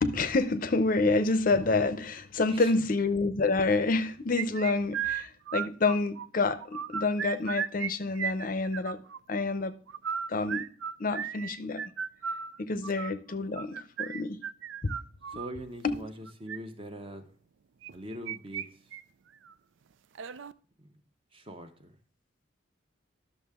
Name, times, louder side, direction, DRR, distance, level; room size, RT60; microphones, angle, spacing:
voice 1, 0.0-9.0 9.3-9.7 10.3-10.6 11.0-11.8 12.6-14.4 14.8-14.9 15.8-16.0, left 3 dB, 45° left, 0.6 m, -28 dB
sound 1, 4.4-6.3 6.6-7.9 8.2-9.2 9.9-15.5 16.3-16.6 17.8-18.7 18.9-19.0 19.5-19.6 20.2-20.5, right 8 dB, 75° right, 0.4 m, -35 dB
voice 2, 15.3-17.3 17.9-18.9 20.8-20.9 21.3-22.0, equal, 25° right, 0.9 m, -43 dB
11.5 x 6.6 x 3.5 m
head